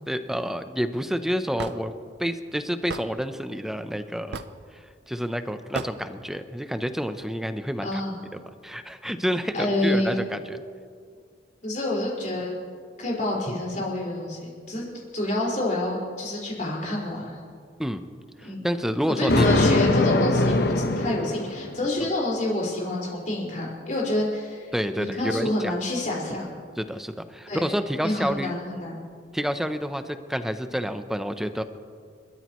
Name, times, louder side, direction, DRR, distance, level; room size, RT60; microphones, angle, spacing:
voice 1, 0.1-1.9 2.2-4.4 4.7-8.0 8.3-10.6 17.8-18.0 18.4-19.5 24.7-25.7 26.8-28.5 29.3-31.6, equal, ahead, 9 dB, 0.7 m, -29 dB
Hammer / Wood, 1.6-1.8 2.9-3.1 4.3-4.6 5.8-5.9, right 4 dB, 65° right, 0.7 m, -33 dB
voice 2, 7.8-8.2 9.5-10.1 11.6-12.6 13.0-14.9 15.1-17.4 18.4-18.6 19.2-26.5 27.5-27.6 28.0-29.0, left 1 dB, 45° left, -4 dB, 4.9 m, -28 dB
Thunder, 19.3-21.8, left 2 dB, 60° left, 1.0 m, -21 dB
30.0 x 13.5 x 3.1 m, 2.1 s
head